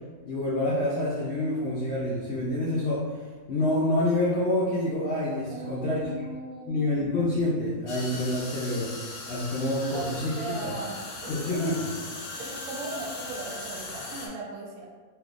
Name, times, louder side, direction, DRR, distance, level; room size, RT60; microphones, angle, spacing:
voice 1, 0.2-3.0 3.5-6.3 6.7-8.9 9.3-10.3 10.6-10.7 11.3-11.9, left 1 dB, 65° left, -7 dB, 0.6 m, -27 dB
voice 2, 5.5-7.1 9.9-11.7 12.4-14.9, right 3 dB, 75° right, -1 dB, 1.1 m, -38 dB
sound 1, 7.9-14.3, left 2 dB, 90° left, 1.2 m, -39 dB
3.4 x 2.6 x 2.4 m, 1.5 s
omnidirectional pair, 1.6 m